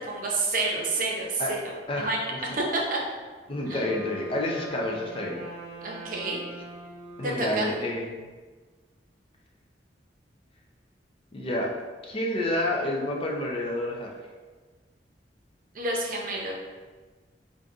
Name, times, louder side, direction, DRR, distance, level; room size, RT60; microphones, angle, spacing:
voice 1, 0.1-1.6 2.0-2.2 2.5-3.0 3.7-3.8 5.8-6.4 7.2-7.7 15.7-16.5, right 2 dB, 50° right, -2 dB, 0.6 m, -29 dB
Wind instrument woodwind instrument, 3.4-8.3, right 2 dB, 25° right, 1.4 m, -43 dB
voice 2, 3.5-5.4 7.2-8.2 11.3-11.7 12.0-14.2, left 1 dB, 30° left, -1 dB, 0.5 m, -29 dB
5.1 x 2.5 x 2.3 m, 1.4 s
head